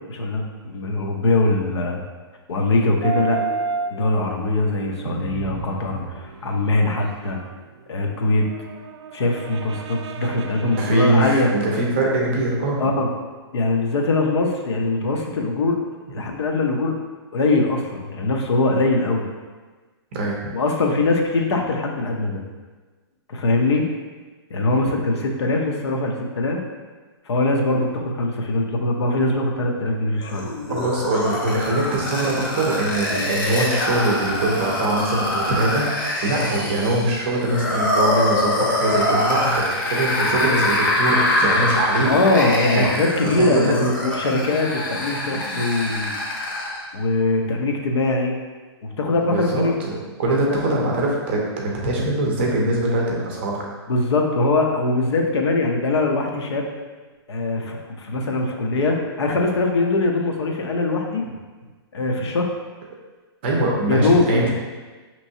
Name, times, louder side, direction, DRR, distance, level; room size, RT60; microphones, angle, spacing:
voice 1, 0.1-2.0 2.5-3.4 3.9-7.4 7.9-8.5 9.1-11.6 12.8-13.1 13.5-15.8 16.1-16.9 17.3-19.2 20.5-22.4 23.3-23.9 24.5-26.6 27.3-30.8 42.0-46.2 46.9-48.4 48.8-49.8 50.3-50.8 53.9-56.7 57.3-61.3 61.9-62.5 63.9-64.5, left 2 dB, 75° left, 1 dB, 0.8 m, -22 dB
sound 1, 3.0-11.3 12.7-12.8, right 4 dB, 90° right, 0.4 m, -32 dB
voice 2, 10.8-12.8 20.1-20.5 30.7-35.9 36.2-42.1 42.7-42.9 43.2-43.7 49.2-53.7 63.4-64.5, right 2 dB, 25° right, -2 dB, 0.6 m, -22 dB
sound 2, 30.2-46.8, left 1 dB, 50° left, 0.9 m, -24 dB
5.3 x 3.0 x 2.7 m, 1.3 s
hypercardioid pair, 175°, 14 cm